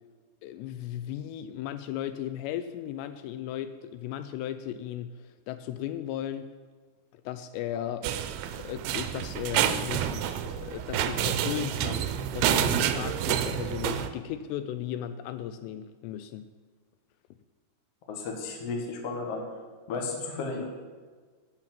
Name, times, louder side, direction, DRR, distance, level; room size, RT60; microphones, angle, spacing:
voice 1, 0.4-6.5 7.1-8.0 8.5-16.5, left 11 dB, 85° left, 11 dB, 2.6 m, -36 dB
sound 1, 8.0-14.1, right 10 dB, 80° right, 2.2 m, -28 dB
voice 2, 18.1-19.4 19.9-20.6, left 4 dB, 50° left, 2 dB, 1.9 m, -33 dB
12.0 x 5.8 x 8.9 m, 1.5 s
omnidirectional pair, 5.0 m